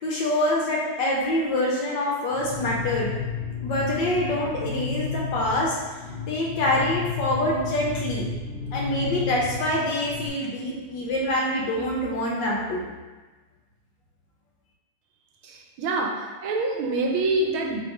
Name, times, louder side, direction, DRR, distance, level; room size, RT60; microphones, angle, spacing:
voice 1, 0.0-3.1 3.6-5.7 6.3-8.3 8.7-12.9, left 1 dB, 70° left, -3 dB, 1.1 m, -25 dB
sound 1, 2.3-10.3, left 5 dB, 85° left, 0.6 m, -32 dB
voice 2, 15.4-16.1 16.4-17.8, right 2 dB, 85° right, 1 dB, 1.4 m, -25 dB
3.4 x 2.6 x 4.5 m, 1.3 s
omnidirectional pair, 2.3 m